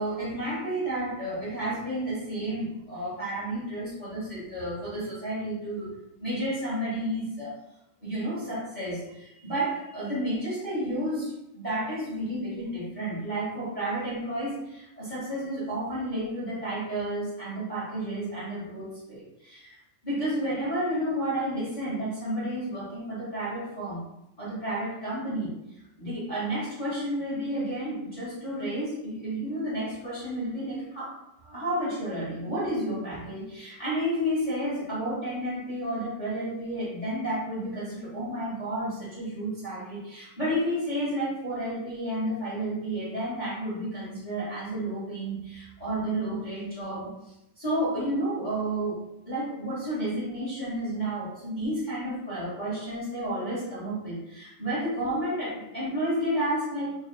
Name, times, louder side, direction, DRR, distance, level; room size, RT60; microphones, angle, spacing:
voice 1, 0.0-5.9 6.2-7.6 8.0-19.7 20.0-24.0 24.4-25.5 26.0-47.1 47.6-49.0 49.2-57.0, right 1 dB, 35° left, -9 dB, 0.7 m, -31 dB
6.8 x 3.0 x 2.2 m, 0.85 s
omnidirectional pair, 3.8 m